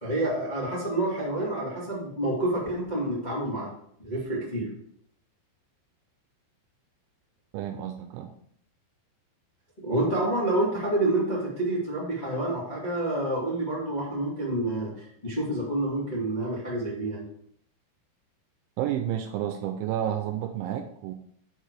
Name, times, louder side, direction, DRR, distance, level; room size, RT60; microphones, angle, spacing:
voice 1, 0.0-3.7 4.0-4.7 9.8-17.2, right 1 dB, 60° left, -7 dB, 0.4 m, -28 dB
voice 2, 7.5-8.3 18.8-21.1, right 11 dB, 85° right, 6 dB, 2.8 m, -30 dB
7.4 x 4.7 x 4.7 m, 0.68 s
omnidirectional pair, 5.5 m